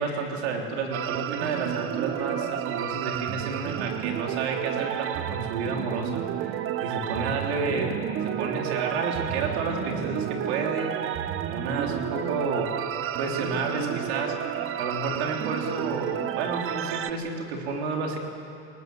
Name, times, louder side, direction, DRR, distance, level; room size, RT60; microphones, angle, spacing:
voice 1, 0.0-6.6 6.8-10.9 11.5-12.8 13.2-14.4 14.8-18.2, right 4 dB, 85° right, 1 dB, 3.7 m, -30 dB
sound 1, 0.9-17.1, right 11 dB, 45° right, 0.9 m, -31 dB
22.0 x 19.0 x 8.0 m, 2.5 s
supercardioid pair, 120°, 31 cm